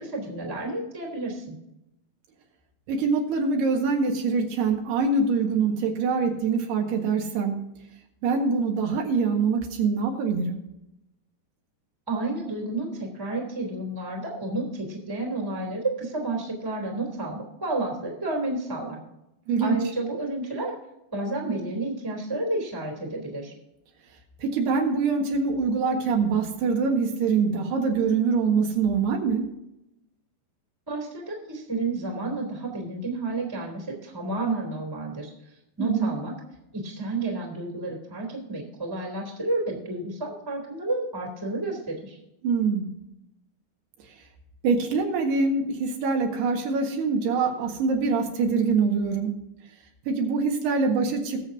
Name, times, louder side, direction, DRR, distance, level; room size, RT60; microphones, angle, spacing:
voice 1, 0.0-1.5 12.1-19.0 19.6-20.7 21.1-23.5 30.9-35.3 35.8-36.3 36.7-42.2, right 2 dB, 5° right, 0 dB, 2.3 m, -31 dB
voice 2, 2.9-7.7 8.2-10.6 19.5-19.8 24.4-29.6 35.8-36.2 42.4-42.9 44.6-49.3 50.1-51.5, right 4 dB, 80° right, 1 dB, 3.7 m, -24 dB
20.5 x 7.4 x 2.7 m, 0.87 s
omnidirectional pair, 4.6 m